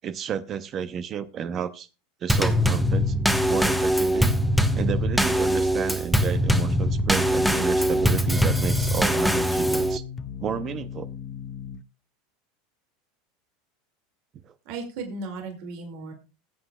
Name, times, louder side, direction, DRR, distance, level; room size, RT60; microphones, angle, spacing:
voice 1, 0.0-1.9 2.2-3.1 3.5-4.3 4.7-10.0 10.4-11.1 14.5-14.6, right 8 dB, 40° right, 12 dB, 0.7 m, -31 dB
Drum kit / Snare drum / Bass drum, 2.3-10.0, equal, ahead, 1.0 m, -22 dB
sound 1, 6.5-11.8, left 7 dB, 30° left, 0.6 m, -36 dB
voice 2, 14.7-16.1, right 3 dB, 65° right, 4 dB, 2.3 m, -35 dB
20.0 x 7.9 x 2.3 m, 0.30 s
supercardioid pair, 115°, 0 cm